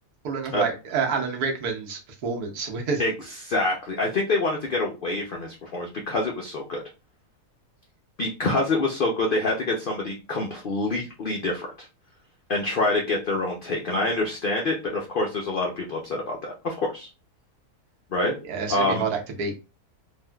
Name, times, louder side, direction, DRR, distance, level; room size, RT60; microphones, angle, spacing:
voice 1, 0.2-3.0 18.5-19.5, right 5 dB, 75° right, 2 dB, 1.2 m, -28 dB
voice 2, 3.0-6.8 8.2-11.9 12.5-17.1 18.1-18.3 18.7-19.0, left 2 dB, 85° left, 0 dB, 0.4 m, -26 dB
3.5 x 2.5 x 2.2 m, 0.30 s
omnidirectional pair, 1.6 m